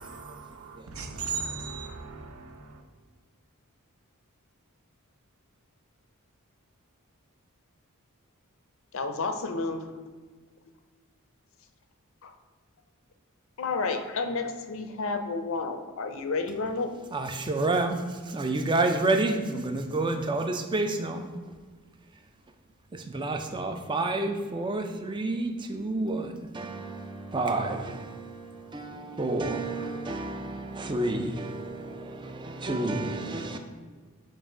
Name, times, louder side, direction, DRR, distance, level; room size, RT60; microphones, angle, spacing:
voice 1, 0.0-2.8, right 5 dB, 70° right, 0.7 m, -37 dB
voice 2, 8.9-9.9 12.2-12.3 13.6-16.9, left 3 dB, 60° left, 0.5 m, -31 dB
voice 3, 17.1-21.3 22.9-33.6, right 2 dB, 20° right, 0.4 m, -30 dB
7.5 x 2.5 x 4.9 m
head